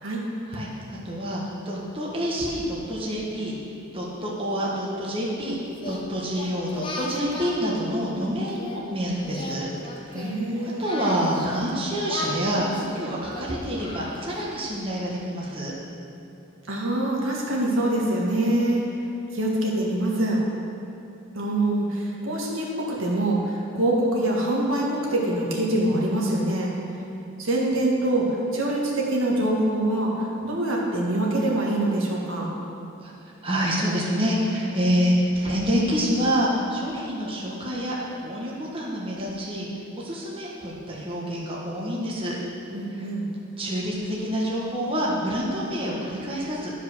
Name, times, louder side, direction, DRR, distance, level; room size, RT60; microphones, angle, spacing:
voice 1, 0.5-3.6 3.9-5.6 5.9-10.2 10.6-15.7 33.0-33.1 33.4-38.0 38.2-39.7 40.0-42.3 42.9-43.0 43.6-46.7, equal, 25° right, -5 dB, 1.3 m, -27 dB
Singing, 5.8-8.8 9.2-11.7 12.1-14.7, left 2 dB, 25° left, 1.0 m, -37 dB
voice 2, 10.1-11.0 16.7-18.8 19.3-20.4 21.3-26.7 27.4-32.5 42.7-43.3, right 1 dB, 75° right, -3 dB, 1.7 m, -24 dB
11.5 x 5.0 x 6.1 m, 2.9 s
head